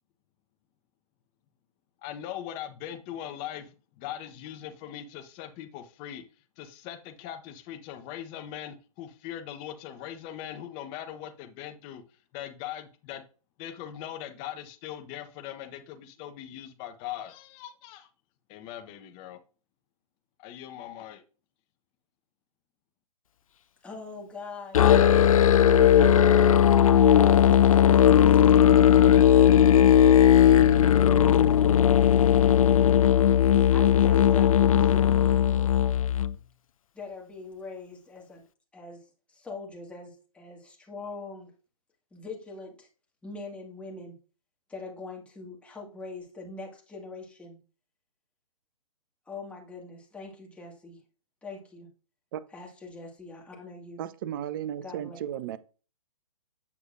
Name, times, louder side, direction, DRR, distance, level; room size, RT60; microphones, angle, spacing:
voice 1, 2.0-3.7 4.0-6.2 6.6-12.0 12.3-13.2 13.6-18.1 18.5-19.4 20.4-21.2, left 11 dB, 25° left, 1.0 m, -40 dB
voice 2, 23.8-25.8 28.7-29.4 33.7-35.7 36.9-38.4 38.7-41.5 42.1-42.9 43.2-44.1 44.7-47.6 49.3-51.0 51.4-51.9 52.5-54.0 54.8-55.2, left 3 dB, 5° left, 1.9 m, -43 dB
Musical instrument, 24.7-36.3, left 9 dB, 65° left, 0.5 m, -18 dB
voice 3, 54.0-55.6, right 10 dB, 35° right, 0.7 m, -34 dB
8.3 x 6.7 x 2.5 m
figure-of-eight pair, 135°, 19 cm